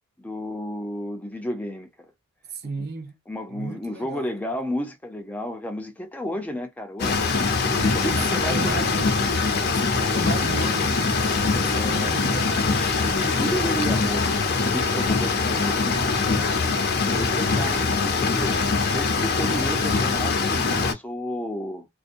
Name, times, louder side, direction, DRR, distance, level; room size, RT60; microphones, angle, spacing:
voice 1, 0.2-2.1 2.8-2.9 3.3-8.8 11.5-12.2 12.7-16.4 17.0-21.9, equal, 5° left, 0.5 m, -32 dB
voice 2, 2.5-3.2 3.5-4.3 8.1-13.6 19.4-20.2, right 4 dB, 50° right, 0.6 m, -36 dB
sound 1, 7.0-20.9, left 4 dB, 50° left, 0.6 m, -23 dB
2.6 x 2.2 x 2.5 m
head